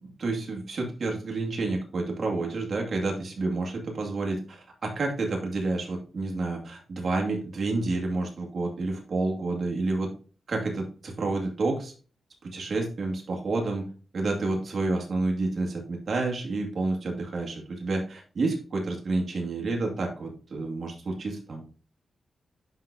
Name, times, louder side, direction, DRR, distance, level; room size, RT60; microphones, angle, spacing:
voice 1, 0.0-10.1 10.5-11.9 12.4-13.9 14.1-21.6, right 3 dB, 60° right, 1 dB, 2.1 m, -29 dB
11.0 x 3.9 x 2.7 m, 0.38 s
cardioid pair, 70°, 0 cm